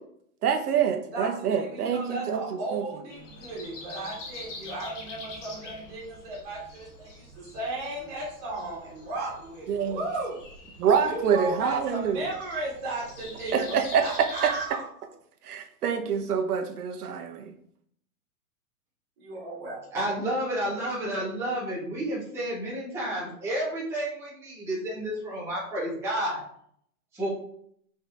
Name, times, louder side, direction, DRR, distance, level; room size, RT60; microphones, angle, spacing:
voice 1, 0.4-2.4 2.7-2.8 9.7-10.0 10.8-12.2 13.5-14.0 15.4-17.5, right 7 dB, 80° right, 5 dB, 1.0 m, -26 dB
voice 2, 1.1-10.4 11.1-14.8 19.2-19.8, right 2 dB, 25° right, -5 dB, 2.6 m, -35 dB
Breathing, 3.1-14.7, left 2 dB, 50° left, 1.7 m, -45 dB
voice 3, 19.9-26.4 27.1-27.3, right 1 dB, 5° right, -8 dB, 1.8 m, -30 dB
5.6 x 4.6 x 3.7 m, 0.65 s
hypercardioid pair, 175°, 44 cm